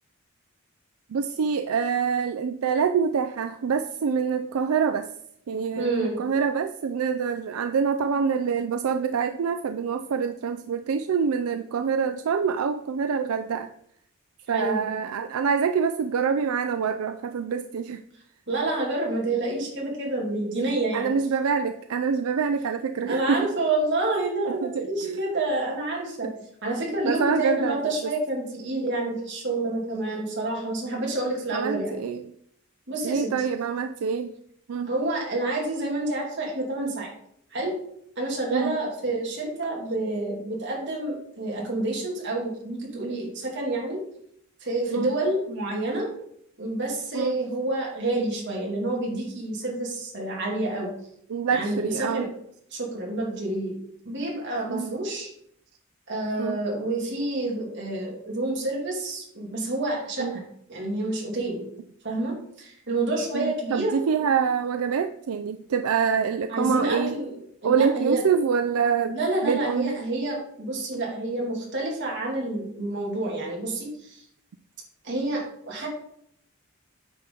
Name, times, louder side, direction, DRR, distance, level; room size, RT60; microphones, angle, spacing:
voice 1, 1.1-5.1 5.5-13.7 14.5-18.0 20.9-23.4 24.5-25.2 26.2-26.3 27.0-28.1 31.5-32.3 33.0-34.3 34.7-34.9 38.5-38.8 44.9-45.1 47.1-47.4 51.3-52.3 54.7-54.9 56.4-56.6 60.2-60.4 63.3-67.2 67.6-69.2 69.4-70.0, right 6 dB, 85° right, 8 dB, 0.4 m, -26 dB
voice 2, 5.7-6.2 14.5-14.8 18.5-21.1 23.0-26.3 26.6-31.9 32.9-33.3 34.8-37.1 37.5-37.8 38.2-44.0 44.6-46.1 46.6-50.9 51.5-52.3 52.7-53.8 54.0-55.3 56.1-60.4 60.7-61.7 62.0-64.0 66.5-67.3 67.6-68.2 69.0-74.2 75.0-75.9, right 2 dB, 55° right, -2 dB, 2.5 m, -28 dB
9.0 x 5.8 x 3.8 m, 0.71 s
head